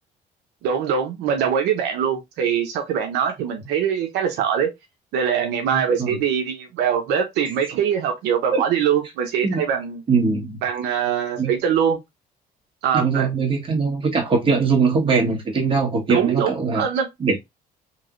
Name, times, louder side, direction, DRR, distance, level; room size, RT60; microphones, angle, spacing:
voice 1, 0.6-4.7 5.1-10.0 10.6-12.0 12.8-13.3 16.1-17.1, right 8 dB, 85° right, 0.8 m, -22 dB
voice 2, 10.1-10.6 11.4-11.5 12.9-16.8 17.2-17.4, right 4 dB, 30° right, 1.5 m, -21 dB
3.1 x 3.0 x 2.5 m
cardioid pair, 110°, 17 cm